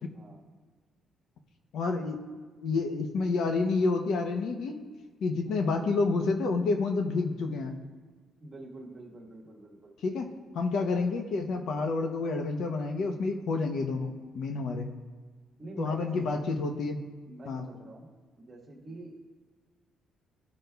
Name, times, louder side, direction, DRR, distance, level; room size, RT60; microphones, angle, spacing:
voice 1, 1.7-2.2 2.6-4.8 5.2-7.8 10.0-14.9 15.8-17.0 17.5-17.6, left 3 dB, 65° left, 5 dB, 0.7 m, -29 dB
voice 2, 5.4-5.8 8.4-9.9 15.6-16.5 17.3-18.1 18.4-19.2, right 2 dB, 25° right, -2 dB, 1.3 m, -44 dB
13.5 x 5.2 x 2.3 m, 1.5 s
cardioid pair, 155°, 0 cm